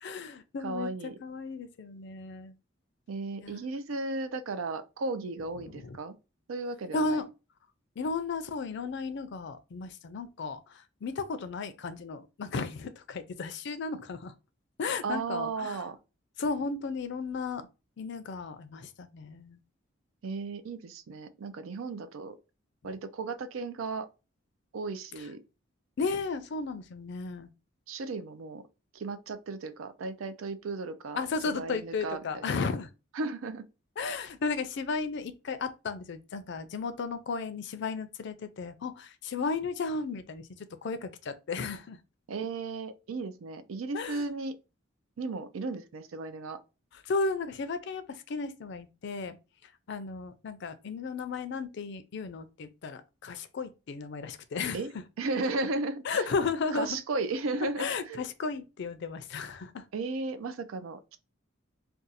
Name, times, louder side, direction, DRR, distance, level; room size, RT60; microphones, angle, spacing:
voice 1, 0.0-0.9 1.2-2.5 3.4-3.6 5.6-6.0 6.9-7.3 8.0-14.3 14.8-15.8 16.4-17.7 18.0-19.6 25.2-25.3 26.0-27.5 31.2-32.9 34.0-42.0 43.9-44.3 47.1-49.4 49.9-54.8 56.0-57.0 57.5-59.9, left 4 dB, 60° left, 0.4 m, -34 dB
voice 2, 0.6-1.2 3.1-6.2 6.5-7.2 15.0-16.0 20.2-22.4 22.8-24.1 24.7-25.4 27.9-28.6 28.9-32.4 33.1-33.7 42.3-44.6 45.2-46.6 54.7-54.9 55.2-56.3 56.7-58.2 59.9-61.2, right 3 dB, 85° right, 0.4 m, -35 dB
2.5 x 2.3 x 4.0 m
head